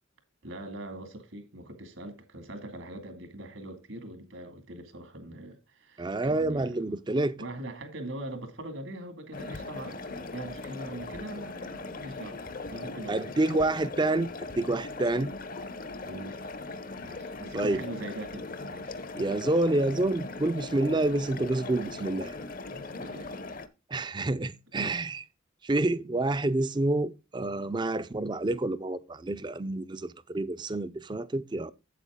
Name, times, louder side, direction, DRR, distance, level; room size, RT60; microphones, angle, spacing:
voice 1, 0.4-6.9 7.4-12.4 12.7-13.3 16.0-16.5 17.0-19.0 22.7-23.3 24.8-25.0, right 1 dB, 75° right, 2.2 m, -42 dB
voice 2, 6.0-7.4 13.1-14.3 14.6-15.3 17.5-17.8 19.1-22.3 23.9-25.2 25.6-31.7, right 2 dB, 20° right, 0.5 m, -28 dB
sound 1, 9.3-23.7, left 3 dB, 45° left, 0.7 m, -39 dB
8.4 x 7.7 x 3.6 m
head